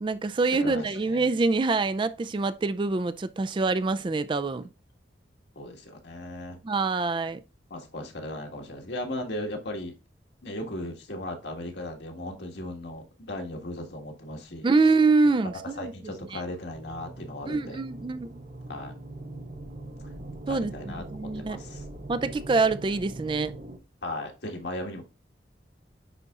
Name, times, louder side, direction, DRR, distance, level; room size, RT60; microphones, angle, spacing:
voice 1, 0.0-4.7 6.6-7.4 14.6-16.4 17.4-18.3 20.5-21.6 22.1-23.5, right 3 dB, 30° right, 0.3 m, -25 dB
voice 2, 0.6-1.3 5.5-6.6 7.7-9.9 10.4-14.7 15.8-17.8 18.7-18.9 20.5-21.0 21.3-21.8 24.0-25.0, left 1 dB, 75° left, 1.6 m, -37 dB
sound 1, 16.7-23.8, right 2 dB, 45° right, 0.8 m, -41 dB
9.9 x 4.1 x 2.4 m
head